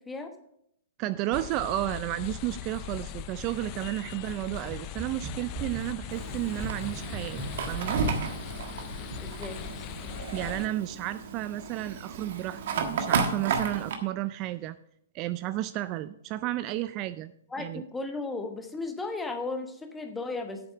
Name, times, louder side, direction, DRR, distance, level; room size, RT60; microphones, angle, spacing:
voice 1, 1.0-8.0 10.3-14.8 15.1-17.3 17.6-17.8, right 15 dB, 35° right, 14 dB, 0.4 m, -32 dB
sound 1, 1.3-10.7, left 12 dB, 40° left, 0.5 m, -40 dB
sound 2, 3.9-8.3, right 3 dB, 15° right, 1.6 m, -41 dB
Fire, 6.1-14.0, right 5 dB, 60° right, 1.4 m, -33 dB
voice 2, 9.2-9.7 17.5-20.6, left 3 dB, 10° left, 6 dB, 1.2 m, -35 dB
8.8 x 6.9 x 5.7 m, 0.72 s
hypercardioid pair, 125°, 0 cm